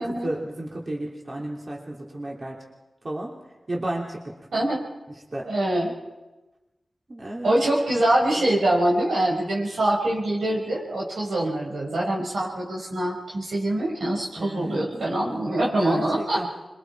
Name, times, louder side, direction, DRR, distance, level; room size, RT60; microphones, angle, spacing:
voice 1, 0.0-2.6 3.0-3.4 3.7-4.4 5.3-5.5 7.1-7.7 8.3-8.5 14.4-14.8 15.3-16.5, right 1 dB, 45° right, -2 dB, 3.2 m, -33 dB
voice 2, 4.5-4.9 5.4-5.9 7.4-16.4, right 1 dB, 90° right, -4 dB, 6.1 m, -24 dB
26.0 x 23.0 x 4.8 m, 1.1 s
cardioid pair, 55°, 0 cm